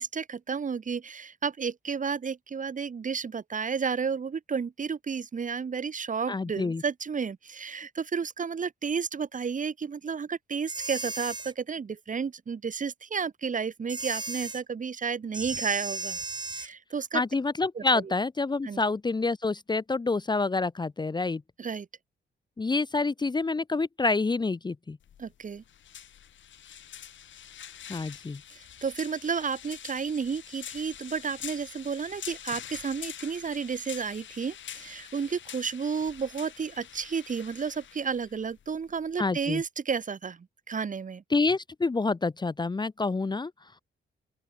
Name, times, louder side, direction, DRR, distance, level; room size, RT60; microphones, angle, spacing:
voice 1, 0.0-16.2 16.5-17.2 17.7-17.8 18.6-18.8 21.6-21.9 25.2-25.6 28.5-40.4 40.7-41.2, right 6 dB, 40° right, 1.8 m, -32 dB
voice 2, 6.3-6.8 17.1-21.4 22.6-25.0 27.9-28.4 39.2-39.6 41.3-43.5, left 3 dB, 20° left, 0.8 m, -27 dB
sound 1, 10.7-11.5 13.9-14.6 15.3-16.7, right 3 dB, 20° right, 4.9 m, -35 dB
sound 2, 25.0-39.7, left 10 dB, 75° left, 3.6 m, -45 dB
open air
cardioid pair, 100°, 20 cm